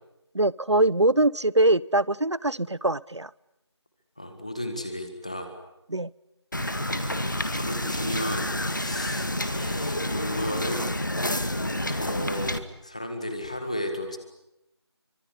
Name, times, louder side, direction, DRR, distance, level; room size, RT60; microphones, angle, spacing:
voice 1, 0.3-3.3 5.9-6.1, right 2 dB, 75° right, 22 dB, 0.9 m, -23 dB
voice 2, 4.2-5.5 6.8-10.9 11.6-14.2, left 1 dB, 15° left, 6 dB, 1.7 m, -34 dB
Wind / Boat Water vehicle, 6.5-12.6, left 1 dB, 45° left, 2.0 m, -29 dB
25.0 x 23.5 x 9.9 m, 0.87 s
figure-of-eight pair, 175°, 15 cm